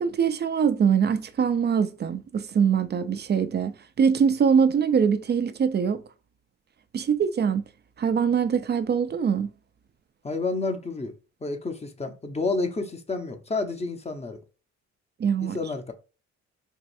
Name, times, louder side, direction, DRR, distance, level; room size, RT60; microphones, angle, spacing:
voice 1, 0.0-6.0 6.9-7.6 8.0-9.5 15.2-15.6, right 7 dB, 35° right, 0.4 m, -23 dB
voice 2, 10.2-11.1 11.4-14.4 15.4-15.9, left 3 dB, 20° left, 0.7 m, -30 dB
4.7 x 2.5 x 2.6 m
cardioid pair, 90°, 30 cm